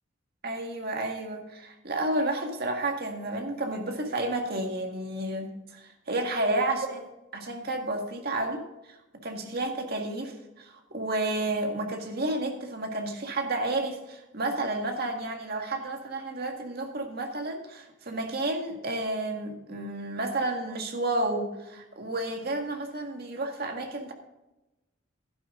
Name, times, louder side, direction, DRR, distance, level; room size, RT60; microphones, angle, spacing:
voice 1, 0.4-8.9 9.2-24.1, right 2 dB, 50° right, 3 dB, 1.9 m, -31 dB
12.0 x 10.5 x 3.8 m, 0.98 s
head